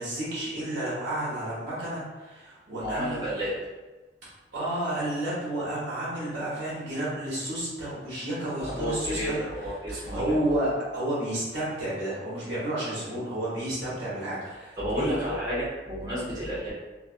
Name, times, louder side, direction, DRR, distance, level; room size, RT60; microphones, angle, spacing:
voice 1, 0.0-3.3 4.5-9.4 9.9-15.1, right 1 dB, 70° right, -8 dB, 1.1 m, -31 dB
voice 2, 2.8-3.5 8.6-10.5 14.8-16.7, equal, 25° right, -10 dB, 0.8 m, -31 dB
2.5 x 2.4 x 2.4 m, 1.2 s
head